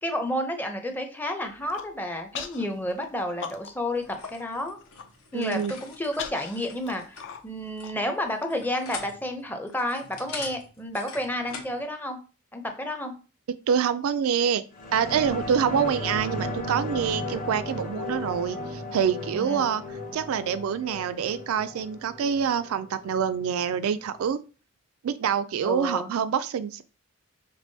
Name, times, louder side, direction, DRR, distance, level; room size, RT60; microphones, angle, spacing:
voice 1, 0.0-4.8 5.3-12.2 12.5-13.1 19.3-19.8 25.6-26.1, left 1 dB, 10° left, 5 dB, 0.5 m, -31 dB
Human voice, 1.5-1.9 2.3-2.7 3.0-3.9 4.2-4.3 4.7-5.1 5.6-8.5, left 7 dB, 60° left, 0.5 m, -39 dB
sound 1, 3.9-11.8, left 4 dB, 80° left, 1.0 m, -44 dB
voice 2, 5.3-5.7 13.7-14.6 14.9-19.8 20.1-24.4 25.0-26.8, right 7 dB, 70° right, 12 dB, 0.3 m, -26 dB
sound 2, 14.7-23.8 24.1-24.2, left 1 dB, 40° left, 0.9 m, -35 dB
5.3 x 3.4 x 2.7 m, 0.36 s
head